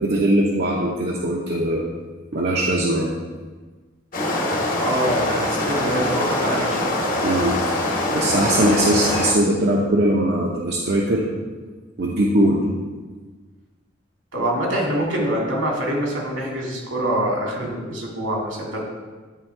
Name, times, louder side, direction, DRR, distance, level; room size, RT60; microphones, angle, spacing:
voice 1, 0.0-1.8 2.3-3.1 7.2-7.5 8.1-11.2 12.0-12.6, right 1 dB, 55° right, -3 dB, 0.7 m, -20 dB
sound 1, 4.1-9.3, left 1 dB, 45° left, 1.0 m, -23 dB
voice 2, 4.8-7.0 14.3-18.8, right 1 dB, 85° right, -2 dB, 2.1 m, -25 dB
9.2 x 3.5 x 4.5 m, 1.3 s
head